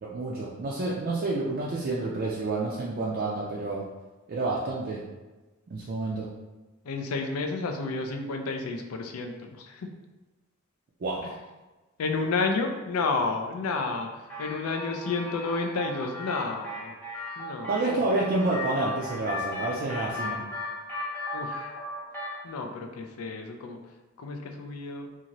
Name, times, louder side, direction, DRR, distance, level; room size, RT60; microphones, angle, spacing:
voice 1, 0.0-3.9 4.3-5.0 5.7-6.3 11.0-11.4 17.7-20.4, right 2 dB, 45° right, -5 dB, 0.4 m, -29 dB
voice 2, 6.8-9.9 11.2-11.4 12.0-16.9 17.4-17.7 18.0-18.1 21.3-21.7 22.4-25.1, left 3 dB, 90° left, 4 dB, 0.4 m, -31 dB
sound 1, 14.3-22.4, left 1 dB, 10° left, 0.7 m, -36 dB
2.7 x 2.4 x 2.9 m, 1.2 s
head